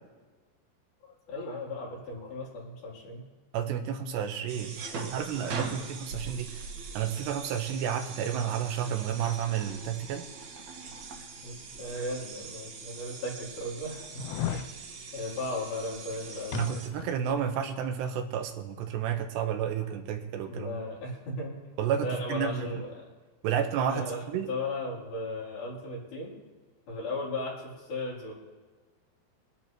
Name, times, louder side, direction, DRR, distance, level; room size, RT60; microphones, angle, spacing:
voice 1, 1.0-3.2 4.8-5.9 11.4-14.1 14.5-14.7 15.1-16.8 20.5-21.5 22.0-23.0 23.9-24.2 24.5-26.3 26.9-28.3, left 2 dB, 60° left, -4 dB, 4.9 m, -36 dB
voice 2, 3.5-6.7 6.9-10.3 16.5-20.8 21.8-22.7 23.4-24.5, right 8 dB, 85° right, 5 dB, 3.2 m, -31 dB
sound 1, 4.5-16.9, right 4 dB, 60° right, 2.2 m, -42 dB
sound 2, 12.2-12.3 13.0-13.1 14.1-14.7 16.5-17.2 17.5-17.6, left 11 dB, 80° left, 2.6 m, -34 dB
23.0 x 10.5 x 3.0 m, 1.3 s
omnidirectional pair, 4.8 m